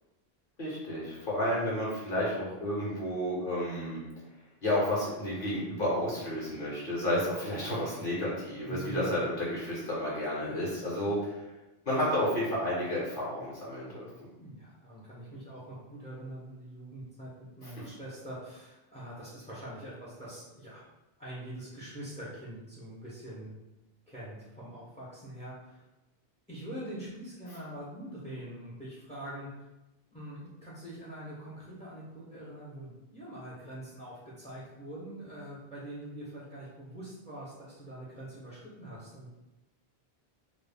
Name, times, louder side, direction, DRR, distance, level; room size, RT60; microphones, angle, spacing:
voice 1, 0.6-4.0 4.6-11.5 11.9-14.1 17.6-17.7, left 1 dB, 55° left, -6 dB, 1.0 m, -31 dB
voice 2, 8.6-9.3 14.4-17.3 17.6-20.8 21.2-23.5 24.1-25.8 26.5-29.6 30.1-39.4, right 1 dB, 10° left, -7 dB, 0.3 m, -44 dB
2.4 x 2.1 x 3.3 m, 1.0 s
omnidirectional pair, 1.1 m